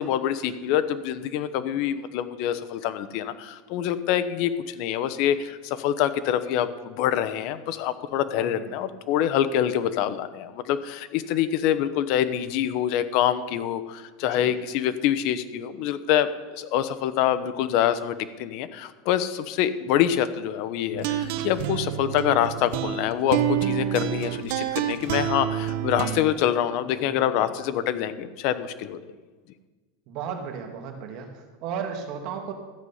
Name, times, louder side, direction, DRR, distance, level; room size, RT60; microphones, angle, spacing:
voice 1, 0.0-29.0, left 10 dB, 50° left, 12 dB, 0.9 m, -26 dB
voice 2, 8.4-8.8 14.3-14.5 26.9-27.5 30.1-32.5, right 7 dB, 50° right, 3 dB, 2.1 m, -35 dB
sound 1, 20.9-26.2, right 11 dB, 65° right, 0.9 m, -28 dB
14.0 x 8.2 x 5.6 m, 1.3 s
supercardioid pair, 150°, 0 cm